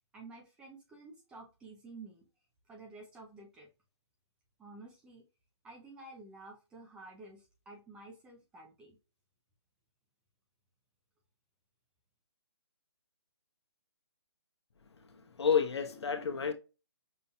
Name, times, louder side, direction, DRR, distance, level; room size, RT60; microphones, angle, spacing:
voice 1, 0.1-2.2 2.7-3.7 4.6-5.2 5.6-9.0, right 3 dB, 5° right, 0.4 m, -51 dB
voice 2, 15.1-16.5, left 6 dB, 70° left, 0.8 m, -30 dB
5.4 x 2.7 x 2.2 m
hypercardioid pair, 155°, 14 cm